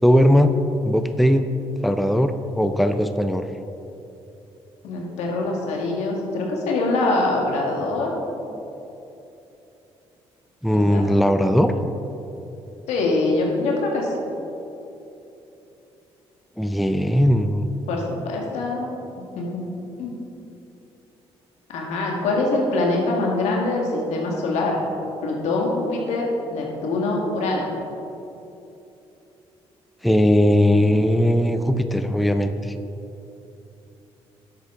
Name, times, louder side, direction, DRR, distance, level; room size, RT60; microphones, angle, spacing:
voice 1, 0.0-0.5 0.8-1.5 1.8-3.4 10.6-11.7 16.6-17.7 30.0-32.7, equal, ahead, 8 dB, 0.5 m, -19 dB
voice 2, 4.8-8.1 10.9-11.0 12.9-14.1 17.9-18.9 19.2-19.6 20.0-20.1 21.7-24.8 25.2-27.7, left 2 dB, 85° left, -1 dB, 1.8 m, -24 dB
10.5 x 8.1 x 3.7 m, 2.9 s
cardioid pair, 80°, 11 cm